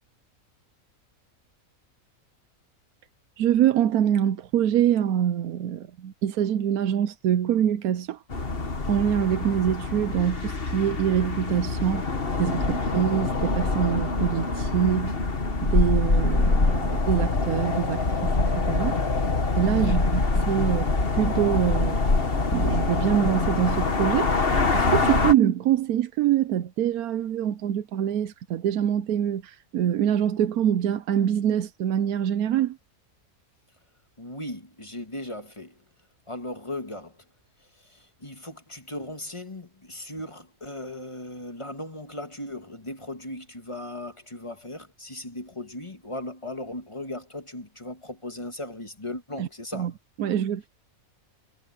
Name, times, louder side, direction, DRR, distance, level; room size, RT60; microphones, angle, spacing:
voice 1, 3.4-8.2 8.9-12.1 12.4-15.1 15.6-19.0 19.6-20.9 21.1-22.0 22.5-32.8 49.4-49.9 50.2-50.7, right 10 dB, 80° right, 1.2 m, -25 dB
sound 1, 8.3-25.3, left 3 dB, 40° left, 1.9 m, -25 dB
voice 2, 19.9-20.2 34.2-35.7 36.3-37.1 37.8-49.9, left 1 dB, 20° left, 1.6 m, -37 dB
omnidirectional pair, 1.5 m